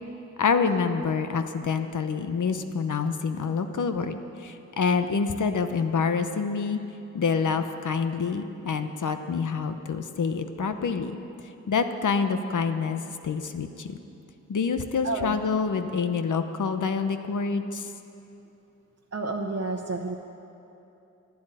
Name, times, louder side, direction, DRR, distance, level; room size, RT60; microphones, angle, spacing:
voice 1, 0.4-6.8 7.1-11.2 11.7-14.0 14.5-17.9, left 5 dB, 85° left, 8 dB, 0.9 m, -27 dB
voice 2, 15.0-15.4 16.1-16.2 19.1-20.1, right 3 dB, 55° right, 0 dB, 0.9 m, -30 dB
12.0 x 11.5 x 9.1 m, 2.9 s
wide cardioid pair, 120°, 30 cm